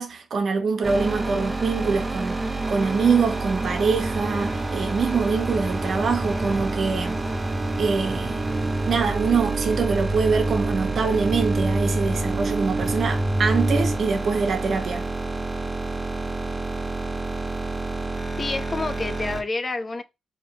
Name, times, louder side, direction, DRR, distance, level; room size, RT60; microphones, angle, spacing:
voice 1, 0.0-7.2 7.8-8.4 8.9-15.1, right 5 dB, 65° right, 1.0 m, -24 dB
sound 1, 0.8-19.4, right 3 dB, 15° right, 1.1 m, -29 dB
sound 2, 4.0-13.9, right 1 dB, 80° right, 1.3 m, -29 dB
sound 3, 6.2-7.4 8.0-9.4 10.8-12.2 12.8-13.0, right 2 dB, 40° right, 0.9 m, -40 dB
voice 2, 18.4-20.0, left 3 dB, 40° left, 0.7 m, -28 dB
3.5 x 3.0 x 4.7 m
cardioid pair, 60°, 0 cm